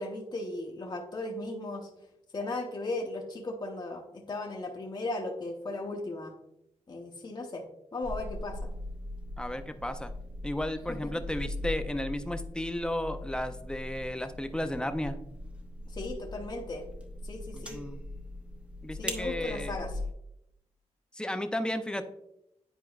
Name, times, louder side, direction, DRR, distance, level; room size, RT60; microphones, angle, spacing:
voice 1, 0.0-1.9 2.3-6.3 6.9-7.6 7.9-8.7 10.9-11.1 15.9-16.9 17.2-17.8 19.0-20.0, left 2 dB, 35° left, 0 dB, 0.9 m, -36 dB
sound 1, 8.0-20.1, left 1 dB, 10° right, 0.9 m, -40 dB
voice 2, 9.4-10.1 10.4-15.2 17.5-18.0 18.8-19.8 21.2-22.0, left 1 dB, 5° left, 8 dB, 0.5 m, -34 dB
9.7 x 4.5 x 2.4 m, 0.83 s
wide cardioid pair, 95°, 12 cm